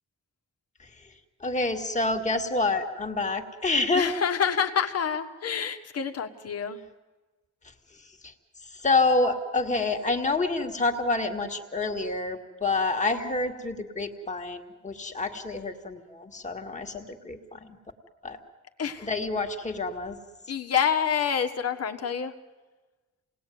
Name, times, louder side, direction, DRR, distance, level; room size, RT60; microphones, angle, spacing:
voice 1, 1.4-4.1 8.8-17.6 18.2-18.4 19.0-20.2, left 3 dB, 25° left, 4 dB, 2.0 m, -27 dB
voice 2, 3.9-6.8 18.8-19.1 20.5-22.3, left 7 dB, 55° left, 7 dB, 1.6 m, -27 dB
28.5 x 19.5 x 9.4 m, 1.2 s
wide cardioid pair, 165°, 29 cm